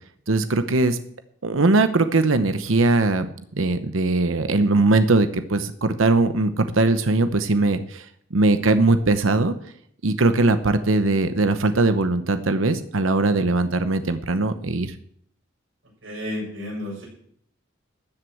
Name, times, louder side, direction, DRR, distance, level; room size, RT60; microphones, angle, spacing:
voice 1, 0.3-1.0 1.4-3.3 3.5-8.1 8.3-9.5 10.0-14.9, right 2 dB, 90° right, 10 dB, 0.9 m, -20 dB
voice 2, 16.0-17.0, left 1 dB, 70° right, -4 dB, 7.1 m, -31 dB
13.5 x 7.9 x 7.9 m, 0.67 s
head